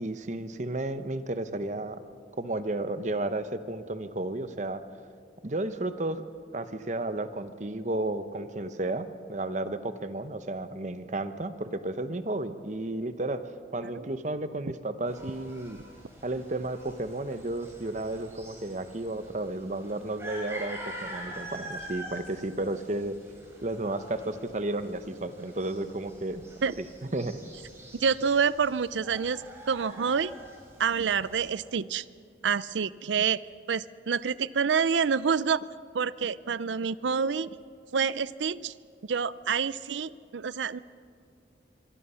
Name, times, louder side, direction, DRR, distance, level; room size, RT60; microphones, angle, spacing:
voice 1, 0.0-2.0 2.4-4.8 5.4-6.2 6.5-15.8 16.2-23.2 23.6-26.4 26.8-26.9 27.1-27.5, right 2 dB, 40° right, 11 dB, 0.9 m, -33 dB
sound 1, 15.1-31.5, right 1 dB, 15° right, 4.8 m, -45 dB
voice 2, 27.9-30.3 30.8-32.0 32.4-33.4 33.7-35.6 35.9-37.5 37.9-38.7 39.1-40.8, right 6 dB, 90° right, 18 dB, 0.5 m, -27 dB
25.5 x 23.0 x 5.7 m, 2.3 s
head